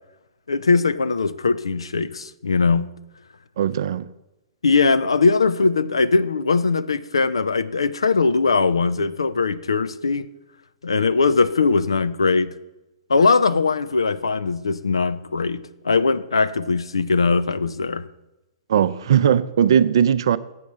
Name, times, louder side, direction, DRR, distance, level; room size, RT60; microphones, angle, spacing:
voice 1, 0.5-2.9 4.6-10.3 10.8-12.5 13.1-18.0, left 4 dB, 75° left, 0.5 m, -20 dB
voice 2, 3.6-4.1 18.7-20.4, right 9 dB, 60° right, 0.5 m, -18 dB
7.9 x 7.1 x 7.2 m
figure-of-eight pair, 110°, 3 cm